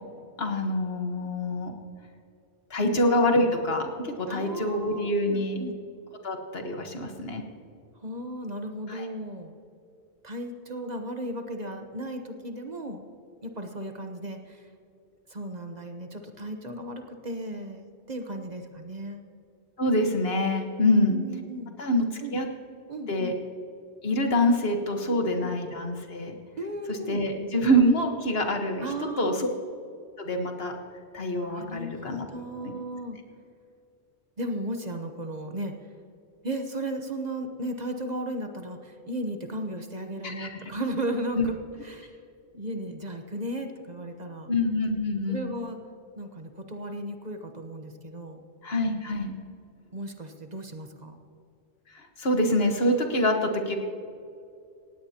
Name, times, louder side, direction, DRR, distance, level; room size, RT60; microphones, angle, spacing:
voice 1, 0.4-1.7 2.7-5.6 6.2-7.4 8.9-9.1 19.8-21.2 21.8-22.5 23.1-23.3 24.0-26.3 26.9-28.9 29.2-29.3 30.2-30.8 31.1-32.3 32.6-32.7 40.2-40.5 41.4-41.5 44.5-45.4 48.6-49.3 52.2-53.8, left 1 dB, 60° left, 3 dB, 1.6 m, -25 dB
voice 2, 4.3-5.8 8.0-9.5 10.2-13.0 13.4-14.7 15.3-19.2 20.8-21.8 22.2-22.4 22.9-23.3 25.1-25.5 26.6-27.2 28.8-29.5 31.5-33.2 34.4-35.8 36.4-41.6 41.8-42.2 42.5-44.5 45.3-45.8 46.2-48.4 49.9-51.2, right 1 dB, 40° right, 5 dB, 1.1 m, -35 dB
18.5 x 16.5 x 2.9 m, 2.5 s
omnidirectional pair, 1.1 m